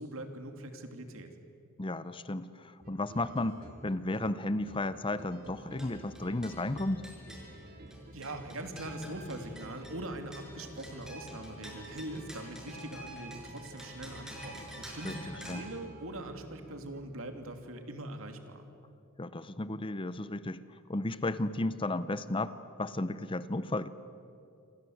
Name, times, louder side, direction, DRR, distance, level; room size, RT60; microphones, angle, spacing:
voice 1, 0.0-1.4 8.1-18.7, right 1 dB, 65° right, 6 dB, 2.7 m, -42 dB
voice 2, 1.8-7.0 15.0-15.2 15.5-15.6 19.2-20.6 20.9-23.9, left 2 dB, 25° left, 14 dB, 0.7 m, -33 dB
sound 1, 2.8-17.2, equal, 45° right, 2.4 m, -53 dB
sound 2, 5.6-15.5, equal, 5° right, 6.0 m, -48 dB
27.5 x 27.0 x 7.9 m, 2.7 s
head